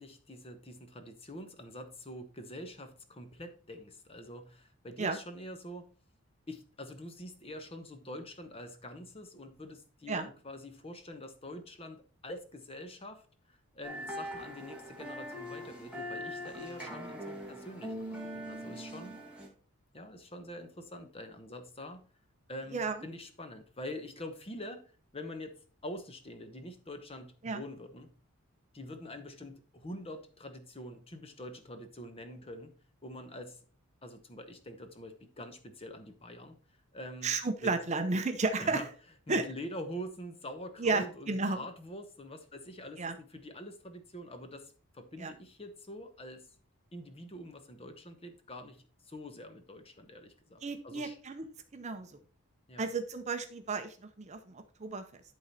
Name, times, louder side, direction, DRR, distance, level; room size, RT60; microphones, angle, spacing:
voice 1, 0.0-5.9 6.5-19.2 19.9-22.0 22.5-24.8 25.1-28.1 28.7-32.7 33.0-33.6 34.0-36.5 36.9-37.3 37.6-37.7 38.6-38.9 39.3-46.5 46.9-51.2 52.7-52.9, left 1 dB, 25° left, 7 dB, 1.0 m, -45 dB
sound 1, 13.8-19.5, equal, 5° right, 1.7 m, -42 dB
voice 2, 37.2-38.8 39.3-39.4 40.8-41.6 43.0-43.1 45.2-45.3 50.6-51.5 51.7-52.1 52.8-55.2, right 3 dB, 30° right, 8 dB, 0.6 m, -33 dB
11.0 x 3.9 x 4.2 m, 0.39 s
head